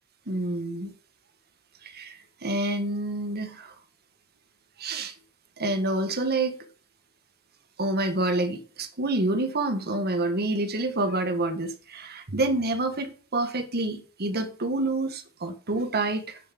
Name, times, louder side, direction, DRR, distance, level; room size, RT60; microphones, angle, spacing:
voice 1, 0.3-0.9 1.8-3.7 4.8-5.1 5.6-6.6 7.8-16.4, right 2 dB, 50° right, 1.5 m, -28 dB
8.4 x 7.2 x 7.5 m
head